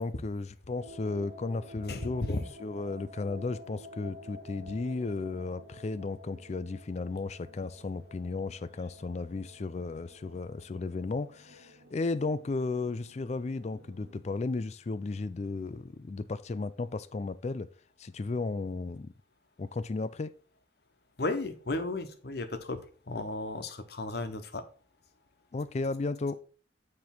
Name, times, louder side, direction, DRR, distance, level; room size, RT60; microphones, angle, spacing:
voice 1, 0.0-17.7 18.0-19.1 19.6-20.3 25.5-26.4, left 3 dB, 35° left, 0.4 m, -34 dB
sound 1, 0.8-14.1, left 1 dB, 90° right, 1.7 m, -51 dB
voice 2, 1.9-2.5 21.2-24.6, left 2 dB, 60° left, 1.0 m, -34 dB
9.4 x 3.2 x 5.8 m
head